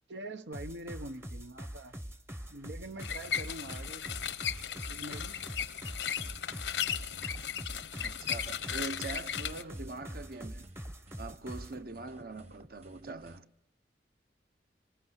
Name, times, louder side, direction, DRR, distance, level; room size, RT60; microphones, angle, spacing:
voice 1, 0.1-2.0 2.5-4.0 4.9-5.3, right 1 dB, 80° right, 1.2 m, -44 dB
sound 1, 0.5-11.8, equal, 15° right, 0.9 m, -44 dB
sound 2, 2.8-13.4, right 1 dB, 35° right, 1.5 m, -55 dB
sound 3, 3.0-9.6, left 9 dB, 80° left, 0.9 m, -36 dB
voice 2, 8.0-10.7 11.2-13.5, right 3 dB, 55° right, 1.0 m, -43 dB
26.0 x 25.0 x 8.2 m
head